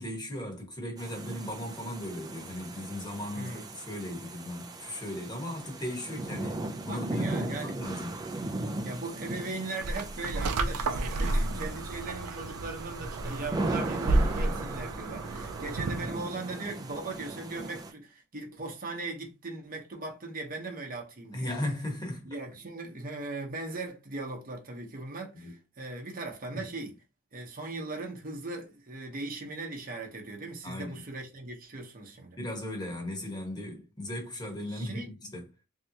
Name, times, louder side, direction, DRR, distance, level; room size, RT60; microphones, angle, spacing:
voice 1, 0.0-8.3 11.2-11.6 21.3-22.4 25.3-25.6 26.5-26.7 30.6-31.0 32.4-35.5, left 1 dB, 20° left, 1.1 m, -37 dB
sound 1, 1.0-17.9, right 2 dB, 15° right, 0.4 m, -38 dB
voice 2, 3.3-3.7 6.9-7.7 8.8-21.5 22.2-26.9 27.3-32.4 34.7-35.1, right 2 dB, 40° right, 0.9 m, -39 dB
sound 2, 9.8-16.2, right 2 dB, 80° right, 0.5 m, -31 dB
3.3 x 2.8 x 2.7 m
head